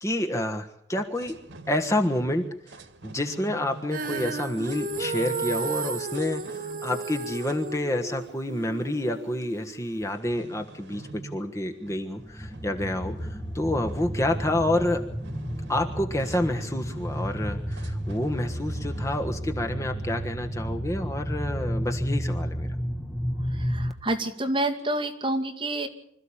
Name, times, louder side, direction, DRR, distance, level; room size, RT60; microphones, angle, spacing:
voice 1, 0.0-1.4 1.7-2.4 3.0-15.0 15.7-22.7, left 1 dB, 15° left, 4 dB, 1.4 m, -28 dB
sound 1, 1.0-19.3, right 2 dB, 85° right, 1.9 m, -45 dB
Female singing, 3.9-10.1, right 3 dB, 50° right, 1.5 m, -33 dB
sound 2, 12.3-23.9, equal, ahead, 1.5 m, -32 dB
voice 2, 23.4-25.9, right 1 dB, 25° right, 2 dB, 2.5 m, -28 dB
26.0 x 14.5 x 8.7 m, 0.71 s
head